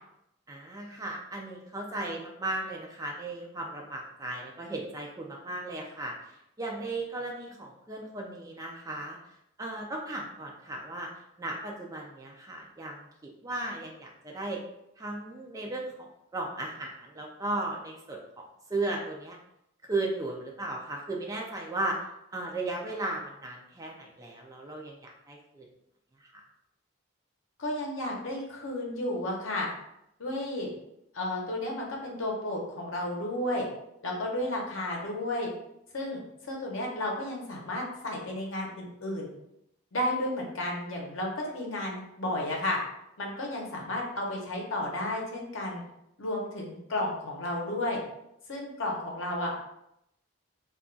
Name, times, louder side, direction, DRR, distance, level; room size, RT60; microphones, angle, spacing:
voice 1, 0.5-6.1 6.6-9.2 9.6-11.1 11.4-14.6 15.0-18.4 18.7-19.4 19.9-22.0 22.3-25.6 26.2-26.3, right 2 dB, 15° right, -1 dB, 0.4 m, -36 dB
voice 2, 27.6-29.7 30.2-30.7 31.1-33.7 34.0-35.5 35.9-39.3 39.9-42.8 43.2-45.8 46.2-48.0 48.5-49.6, left 1 dB, 70° left, -1 dB, 0.8 m, -32 dB
2.4 x 2.2 x 3.8 m, 0.81 s
head